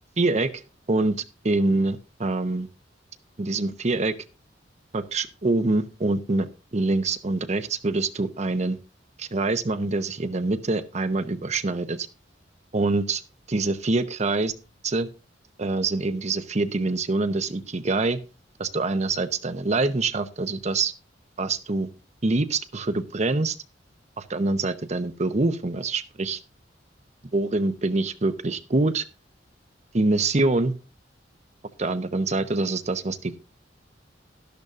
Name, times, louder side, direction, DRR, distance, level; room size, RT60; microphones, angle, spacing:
voice 1, 0.2-0.6 0.9-1.2 1.4-2.7 3.4-4.1 4.9-8.8 9.2-12.1 12.7-13.2 13.5-14.5 14.8-15.1 15.6-18.2 18.6-20.9 21.4-21.9 22.2-23.6 24.2-26.4 27.3-29.0 29.9-30.7 31.8-33.4, right 2 dB, 40° right, 11 dB, 0.8 m, -25 dB
12.0 x 12.0 x 2.5 m, 0.31 s
head